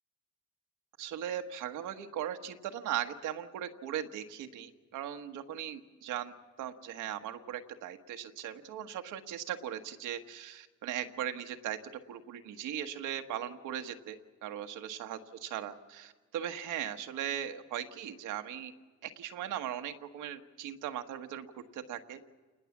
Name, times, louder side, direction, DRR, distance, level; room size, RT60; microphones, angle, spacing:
voice 1, 1.0-6.3 6.6-11.8 12.1-18.7 19.0-22.3, right 10 dB, 90° right, 6 dB, 1.5 m, -39 dB
28.5 x 20.0 x 7.3 m, 1.4 s
cardioid pair, 90°, 30 cm